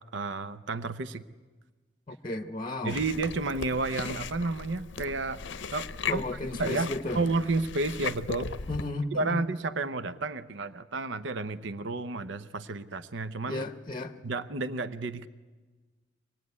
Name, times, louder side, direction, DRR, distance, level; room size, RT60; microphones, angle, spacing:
voice 1, 0.1-1.2 2.8-5.4 5.7-8.6 9.1-13.7 14.2-15.3, right 3 dB, 65° right, 13 dB, 0.8 m, -31 dB
voice 2, 2.1-3.0 6.1-7.2 8.7-9.4 13.5-14.2, left 2 dB, 25° left, 9 dB, 0.8 m, -34 dB
Chewing mastication, 2.9-8.9, left 5 dB, 65° left, 0.7 m, -37 dB
25.0 x 19.5 x 9.6 m, 1.3 s
head